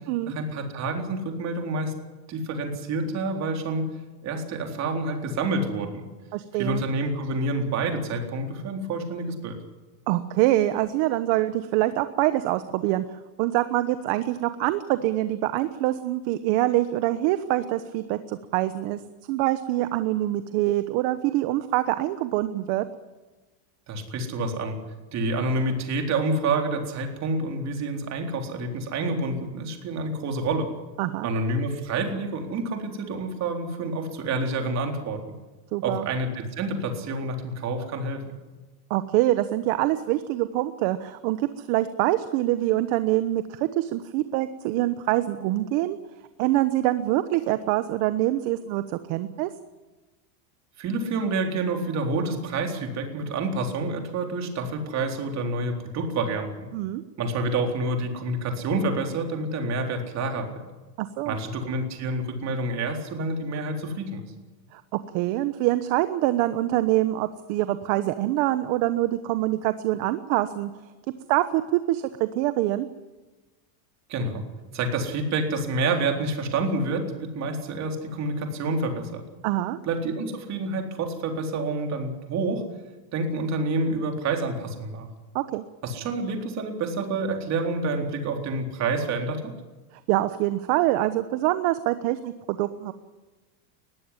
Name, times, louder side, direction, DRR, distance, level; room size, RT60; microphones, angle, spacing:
voice 1, 0.3-1.9 2.3-3.8 4.2-6.0 6.6-9.6 23.9-24.8 25.1-30.7 31.2-35.2 35.8-38.2 50.8-56.7 57.2-60.6 61.3-64.2 74.1-74.4 74.7-79.2 79.9-82.6 83.1-85.1 85.8-89.5, right 2 dB, 35° right, 3 dB, 4.0 m, -28 dB
voice 2, 6.3-6.8 10.1-19.0 19.3-22.8 31.0-31.3 35.7-36.1 38.9-46.0 46.4-49.5 56.7-57.0 61.0-61.4 64.7-64.8 65.1-70.7 71.3-72.9 79.4-79.8 85.3-85.6 90.1-92.9, right 15 dB, 55° right, 11 dB, 1.2 m, -25 dB
21.0 x 15.0 x 9.8 m, 1.2 s
supercardioid pair, 150°, 47 cm